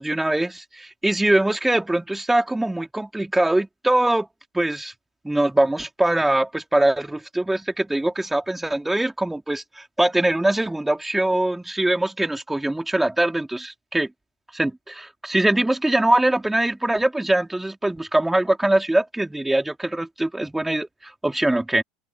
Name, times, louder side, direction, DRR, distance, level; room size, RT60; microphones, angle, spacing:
voice 1, 0.0-4.3 4.5-4.9 5.2-14.1 14.5-21.8, right 1 dB, 5° right, 4.3 m, -22 dB
open air
figure-of-eight pair, 75°, 3 cm